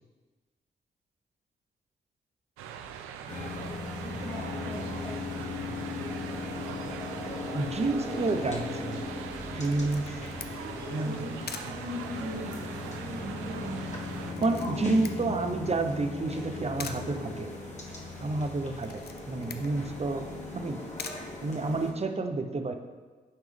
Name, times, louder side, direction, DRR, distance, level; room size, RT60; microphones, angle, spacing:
sound 1, 2.6-14.3, right 8 dB, 85° right, 0.4 m, -42 dB
sound 2, 3.3-21.9, left 3 dB, 35° left, 1.4 m, -38 dB
voice 1, 4.0-5.0 10.6-15.5, equal, 45° right, -4 dB, 1.7 m, -40 dB
voice 2, 7.5-9.0 9.5-10.2 10.9-11.3 14.4-17.5 18.2-20.2 20.5-20.8 21.4-22.7, right 3 dB, 30° right, 6 dB, 0.7 m, -30 dB
Camera, 9.6-22.1, left 6 dB, 50° left, 0.6 m, -47 dB
9.3 x 3.5 x 3.5 m, 1.3 s
hypercardioid pair, 40°, 21 cm